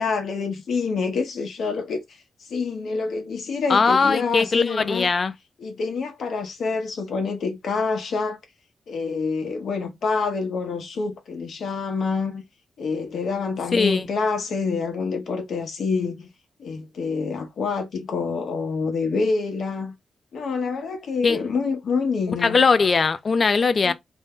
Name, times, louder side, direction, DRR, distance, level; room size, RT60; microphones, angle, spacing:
voice 1, 0.0-2.0 2.5-5.1 5.6-8.4 8.9-12.4 12.8-16.3 16.6-19.9 20.3-22.7 23.8-23.9, left 4 dB, 65° left, 0.8 m, -27 dB
voice 2, 3.7-5.3 13.7-14.1 21.2-21.4 22.4-23.9, left 4 dB, 40° left, 0.3 m, -20 dB
2.6 x 2.1 x 3.5 m
wide cardioid pair, 135°, 0 cm